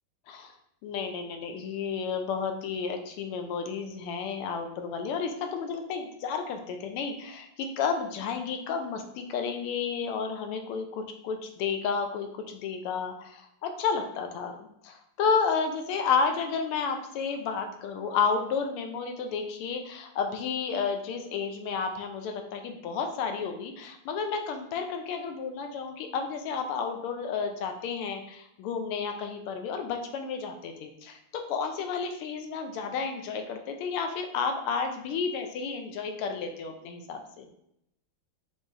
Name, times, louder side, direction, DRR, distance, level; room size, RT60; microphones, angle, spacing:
voice 1, 0.8-31.2 31.5-37.5, left 5 dB, 85° left, 5 dB, 1.6 m, -31 dB
5.4 x 3.2 x 2.6 m, 0.76 s
omnidirectional pair, 2.4 m